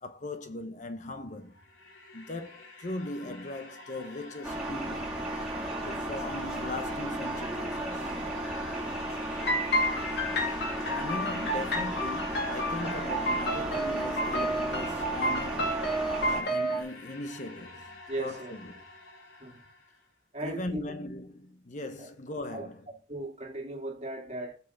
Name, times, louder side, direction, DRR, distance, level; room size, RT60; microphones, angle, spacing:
voice 1, 0.0-1.5 2.1-5.2 5.8-8.2 10.9-15.9 16.2-18.7 20.4-22.9, left 2 dB, 40° left, 0.9 m, -39 dB
sound 1, 1.3-20.0, left 3 dB, 85° left, 2.9 m, -47 dB
sound 2, 4.4-16.4, right 1 dB, 5° right, 2.9 m, -35 dB
sound 3, 9.4-16.8, equal, 60° left, 2.6 m, -30 dB
voice 2, 18.1-18.5 19.4-19.6 20.3-20.8 22.0-22.1 22.5-22.7 23.1-24.6, right 1 dB, 35° right, 2.0 m, -37 dB
7.5 x 5.7 x 6.6 m
head